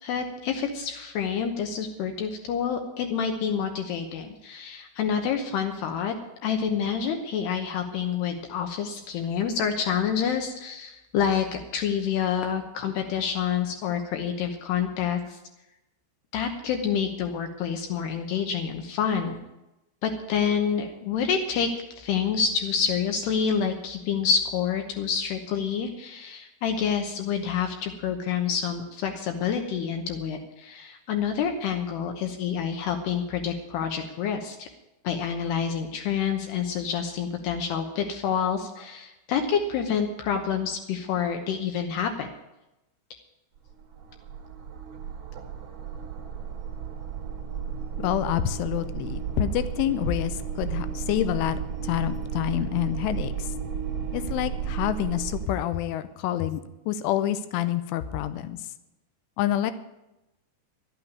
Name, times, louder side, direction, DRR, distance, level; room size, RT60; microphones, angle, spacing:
voice 1, 0.0-6.1 6.4-15.4 16.3-19.4 20.0-34.7 35.0-42.3, left 7 dB, 70° left, 5 dB, 2.8 m, -28 dB
sound 1, 43.6-55.5, right 7 dB, 45° right, 2.3 m, -33 dB
voice 2, 48.0-53.5 54.1-58.6 59.4-59.7, left 12 dB, 90° left, 12 dB, 3.3 m, -27 dB
12.0 x 8.9 x 9.4 m, 0.93 s
omnidirectional pair, 5.4 m